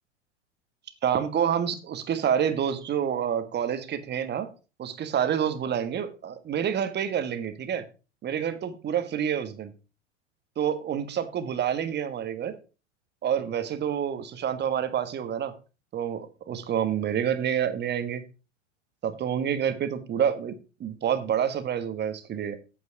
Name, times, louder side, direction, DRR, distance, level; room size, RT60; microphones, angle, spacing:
voice 1, 1.0-4.5 4.8-7.8 8.2-9.7 10.6-12.5 13.2-15.5 15.9-18.2 19.0-20.5 20.8-22.5, right 9 dB, 30° right, 10 dB, 1.5 m, -28 dB
8.8 x 8.0 x 4.8 m, 0.32 s
hypercardioid pair, 90°, 37 cm